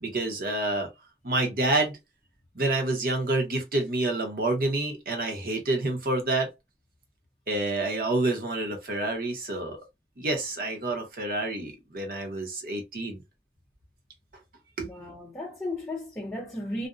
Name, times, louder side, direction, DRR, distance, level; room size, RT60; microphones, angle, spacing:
voice 1, 0.0-0.9 1.2-2.0 2.6-6.5 7.5-9.8 10.2-13.2 14.8-14.9, right 2 dB, 50° right, 0.8 m, -28 dB
voice 2, 14.8-16.9, left 1 dB, 10° left, 0.6 m, -35 dB
2.5 x 2.1 x 2.3 m
head